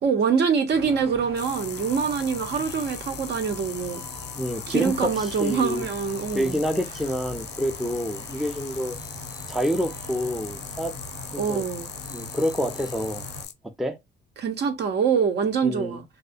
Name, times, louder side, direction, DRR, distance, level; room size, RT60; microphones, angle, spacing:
voice 1, 0.0-4.0 4.7-6.6 11.4-11.9 14.4-16.0, right 6 dB, 60° right, 0.6 m, -25 dB
sound 1, 0.7-13.5, equal, 85° right, 1.4 m, -41 dB
sound 2, 1.4-13.5, left 10 dB, 60° left, 0.4 m, -40 dB
voice 2, 4.3-5.8 6.3-9.0 9.5-10.9 11.3-11.6 12.1-13.3 13.8-14.0 15.6-16.0, equal, ahead, 0.4 m, -28 dB
2.4 x 2.0 x 2.6 m
cardioid pair, 90°, 20 cm